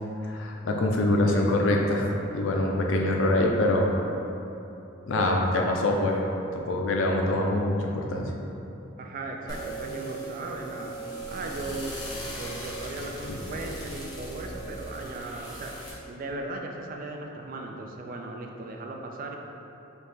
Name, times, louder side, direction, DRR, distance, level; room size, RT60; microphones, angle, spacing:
voice 1, 0.2-2.1 2.3-3.9 5.1-6.2 6.5-8.3 13.2-13.3, left 1 dB, 75° left, 1 dB, 0.5 m, -24 dB
voice 2, 9.0-11.0 11.3-12.0 12.3-15.7 16.1-19.4, right 2 dB, 45° right, 2 dB, 0.4 m, -37 dB
sound 1, 9.5-15.9, right 1 dB, 20° left, 1.1 m, -38 dB
4.1 x 2.8 x 3.5 m, 2.9 s
head